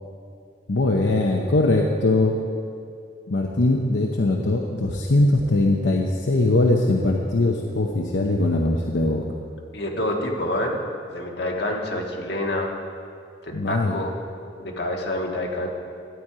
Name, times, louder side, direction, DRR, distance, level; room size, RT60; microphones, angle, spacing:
voice 1, 0.7-2.4 3.3-9.2 13.5-14.0, left 2 dB, 85° left, 0 dB, 0.8 m, -21 dB
voice 2, 9.7-10.8 11.1-12.7 13.4-14.2 14.6-15.7, left 1 dB, 65° left, -1 dB, 1.7 m, -27 dB
12.5 x 9.0 x 4.9 m, 2.4 s
head